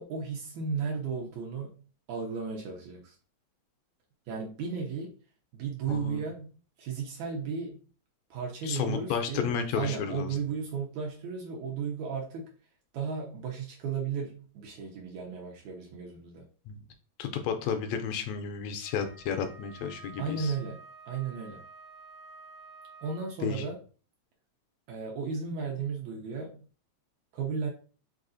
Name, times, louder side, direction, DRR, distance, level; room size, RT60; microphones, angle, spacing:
voice 1, 0.0-1.7 2.1-3.2 4.3-5.2 5.5-6.5 6.8-7.8 8.3-9.5 9.8-12.5 12.9-16.5 20.2-21.6 23.0-23.8 24.9-26.6 27.3-27.7, right 5 dB, 75° right, -1 dB, 2.0 m, -34 dB
voice 2, 5.9-6.2 8.6-10.3 16.7-16.8 17.2-20.5 23.4-23.6, left 7 dB, 80° left, 7 dB, 1.7 m, -32 dB
Wind instrument woodwind instrument, 18.8-23.5, right 4 dB, 45° right, 0.9 m, -51 dB
4.8 x 3.7 x 2.5 m, 0.39 s
omnidirectional pair, 3.3 m